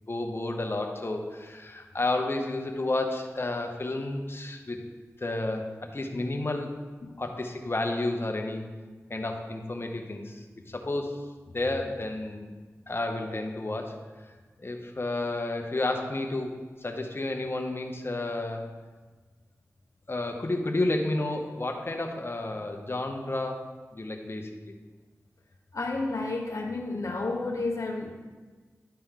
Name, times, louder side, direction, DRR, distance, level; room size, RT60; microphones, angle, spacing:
voice 1, 0.0-4.8 5.2-6.8 7.2-8.7 9.1-11.2 11.5-12.5 12.9-14.0 14.6-18.7 20.1-23.7 23.9-24.7, left 2 dB, 45° left, 3 dB, 0.9 m, -31 dB
voice 2, 25.7-28.1, left 3 dB, 70° left, 0 dB, 0.8 m, -31 dB
11.0 x 4.3 x 3.7 m, 1.4 s
cardioid pair, 45°, 6 cm